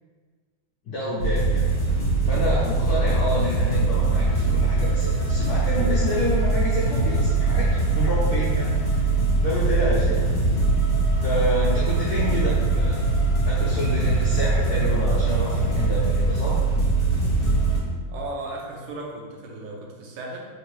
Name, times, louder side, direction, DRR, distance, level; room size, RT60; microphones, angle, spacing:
voice 1, 0.9-1.7 2.2-9.1 9.4-10.3 11.2-13.0 13.4-16.6, left 1 dB, 80° left, -7 dB, 0.8 m, -28 dB
sound 1, 1.2-17.8, right 3 dB, 45° left, 1.5 m, -22 dB
voice 2, 18.1-20.5, right 2 dB, 75° right, -1 dB, 1.3 m, -35 dB
3.6 x 2.6 x 3.0 m, 1.5 s
omnidirectional pair, 2.3 m